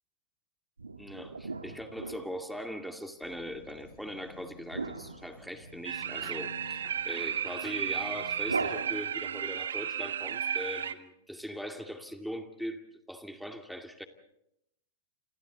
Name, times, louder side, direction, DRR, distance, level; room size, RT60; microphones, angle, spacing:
sound 1, 0.8-2.8 4.7-6.1 8.4-9.5, right 4 dB, 90° right, 1.8 m, -38 dB
voice 1, 1.0-14.1, equal, ahead, 5 dB, 2.5 m, -41 dB
sound 2, 3.2-8.8, left 5 dB, 65° left, 7.5 m, -53 dB
sound 3, 5.8-10.9, right 8 dB, 75° right, 1.1 m, -34 dB
28.5 x 27.0 x 4.1 m, 0.80 s
hypercardioid pair, 100°, 0 cm